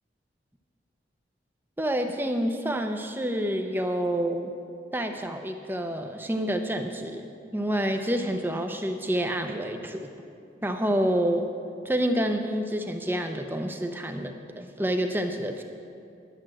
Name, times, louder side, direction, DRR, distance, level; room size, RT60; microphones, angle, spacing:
voice 1, 1.8-4.5 4.9-10.1 10.6-11.5 11.8-15.6, equal, 10° right, 5 dB, 0.6 m, -28 dB
11.0 x 7.3 x 7.6 m, 2.5 s
head